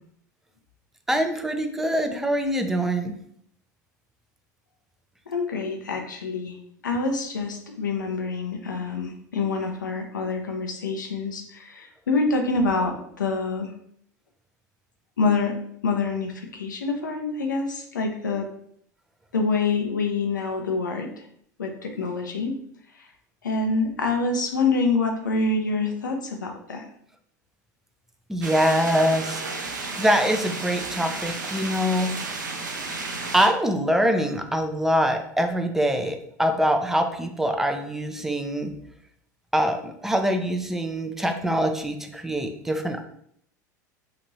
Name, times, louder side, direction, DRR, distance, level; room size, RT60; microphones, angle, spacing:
voice 1, 1.1-3.1 28.3-32.1 33.3-38.7 39.5-43.0, equal, 5° right, 5 dB, 0.4 m, -24 dB
voice 2, 5.3-6.6 6.8-13.7 15.2-18.5 19.3-21.3 21.6-22.6 22.9-23.1 23.4-26.9, left 3 dB, 90° left, 3 dB, 0.5 m, -26 dB
sound 1, 28.4-33.5, right 3 dB, 85° right, 0.5 m, -32 dB
2.9 x 2.5 x 3.0 m, 0.67 s
hypercardioid pair, 80°, 10 cm